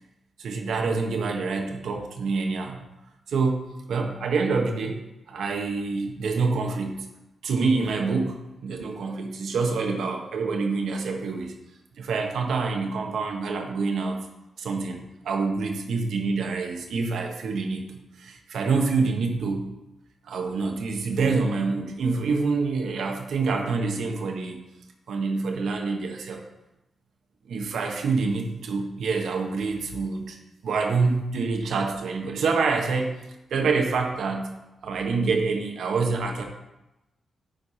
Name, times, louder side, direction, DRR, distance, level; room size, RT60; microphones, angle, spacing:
voice 1, 0.4-2.8 3.3-5.0 5.3-7.1 7.4-11.5 12.0-14.2 14.6-19.7 20.2-24.6 25.1-26.4 27.5-30.4 30.6-33.2 33.5-34.5 34.8-36.4, right 4 dB, 85° right, 2 dB, 1.3 m, -26 dB
10.5 x 4.8 x 4.3 m, 0.94 s
cardioid pair, 85°, 0 cm